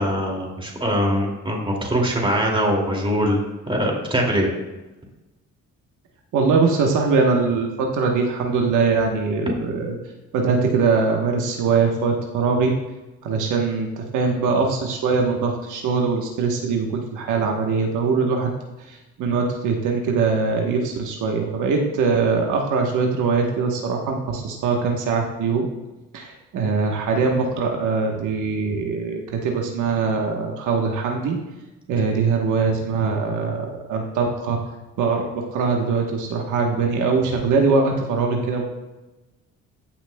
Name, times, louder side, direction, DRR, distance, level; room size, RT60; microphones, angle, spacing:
voice 1, 0.0-4.5, equal, 15° right, -1 dB, 2.4 m, -22 dB
voice 2, 6.3-10.0 10.3-12.7 13.2-18.5 18.9-25.7 26.1-31.4 31.9-34.6 35.0-38.7, right 4 dB, 80° right, 1 dB, 1.2 m, -22 dB
14.0 x 5.8 x 2.2 m, 1.1 s
cardioid pair, 90°, 30 cm